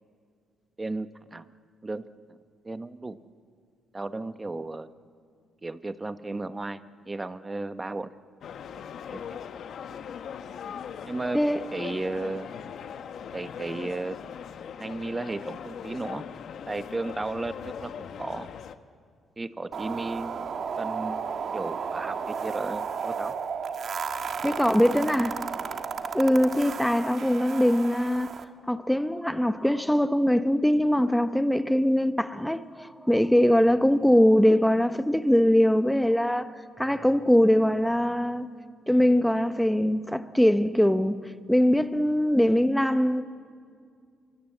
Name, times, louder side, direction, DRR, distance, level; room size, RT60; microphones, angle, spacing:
voice 1, 0.8-1.5 1.8-2.1 2.6-3.2 3.9-4.9 5.6-6.8 7.1-8.1 9.1-9.3 9.6-10.0 11.0-11.4 11.7-12.5 13.3-14.2 14.8-16.2 16.7-18.5 19.4-20.3 20.8-21.2 21.5-23.4, right 2 dB, 20° right, 1.0 m, -34 dB
sound 1, 8.4-18.7, left 7 dB, 65° left, 1.1 m, -40 dB
sound 2, 19.7-28.4, right 6 dB, 55° right, 1.4 m, -33 dB
voice 2, 24.4-25.4 26.1-28.3 28.7-36.5 36.8-38.5 38.9-41.2 41.5-43.2, equal, 5° left, 1.1 m, -22 dB
26.0 x 23.5 x 7.9 m
cardioid pair, 90°, 0 cm